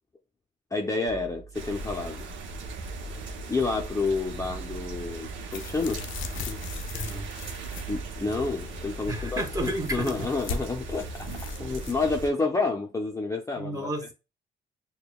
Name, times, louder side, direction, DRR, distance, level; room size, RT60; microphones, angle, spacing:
voice 1, 0.7-2.3 3.5-6.0 6.5-6.6 7.9-11.3 11.6-13.9, left 3 dB, 15° left, 0.6 m, -29 dB
sound 1, 1.1-2.0 2.6-4.0 4.3-5.4 6.1-7.9, right 6 dB, 45° right, 0.8 m, -44 dB
sound 2, 1.5-12.3, right 2 dB, 75° right, 0.8 m, -38 dB
sound 3, 5.5-11.9, left 5 dB, 85° left, 0.6 m, -40 dB
voice 2, 6.9-7.3 9.1-10.3 13.6-14.1, right 1 dB, 20° right, 1.1 m, -32 dB
6.6 x 2.3 x 2.2 m
cardioid pair, 90°, 20 cm